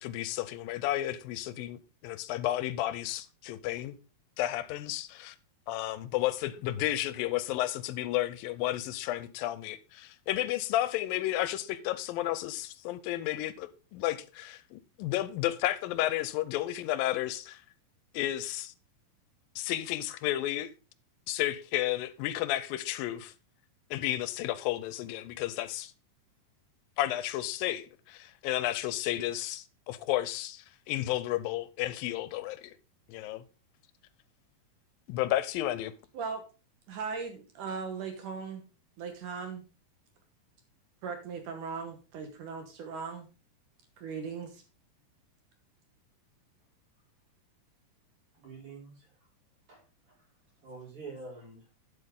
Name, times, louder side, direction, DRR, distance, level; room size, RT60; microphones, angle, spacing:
voice 1, 0.0-4.0 4.4-5.4 5.7-17.6 18.1-18.7 19.6-20.7 21.3-23.3 23.9-25.9 27.0-32.7 33.1-33.4 35.1-35.9, left 14 dB, 90° left, 2.4 m, -32 dB
voice 2, 36.9-38.6 39.0-39.6 41.0-43.3 44.0-44.6, right 5 dB, 70° right, 2.5 m, -38 dB
voice 3, 48.3-49.1 49.7-49.8 50.1-50.2 50.6-51.7, right 3 dB, 40° right, 5.7 m, -46 dB
9.8 x 8.0 x 3.7 m
omnidirectional pair, 4.0 m